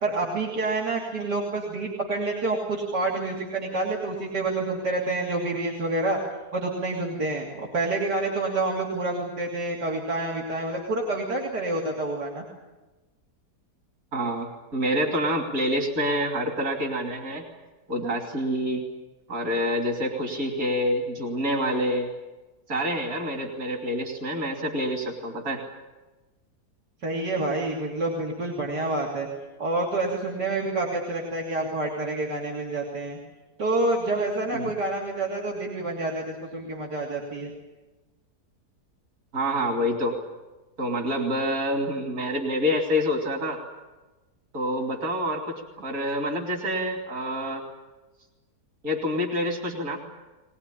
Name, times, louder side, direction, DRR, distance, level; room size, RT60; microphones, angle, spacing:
voice 1, 0.0-6.2 6.5-12.4 27.0-29.3 29.6-33.2 33.6-37.5, right 2 dB, 85° right, -2 dB, 3.6 m, -28 dB
voice 2, 14.1-17.4 17.9-18.8 19.3-22.1 22.7-25.6 34.5-34.7 39.3-40.2 40.8-43.6 44.5-47.6 48.8-50.0, equal, 55° right, 2 dB, 3.4 m, -27 dB
21.0 x 20.5 x 10.0 m, 1.1 s
omnidirectional pair, 1.8 m